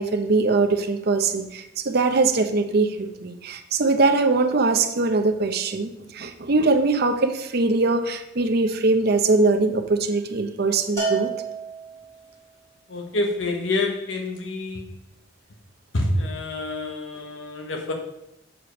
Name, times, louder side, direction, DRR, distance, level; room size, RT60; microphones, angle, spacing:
voice 1, 0.0-11.3, right 3 dB, 55° right, 7 dB, 0.7 m, -22 dB
Bell, 11.0-12.3, right 5 dB, 15° left, 2.6 m, -29 dB
voice 2, 12.9-14.9 15.9-17.9, left 2 dB, 75° left, 2 dB, 1.1 m, -27 dB
7.4 x 4.9 x 5.1 m, 0.87 s
head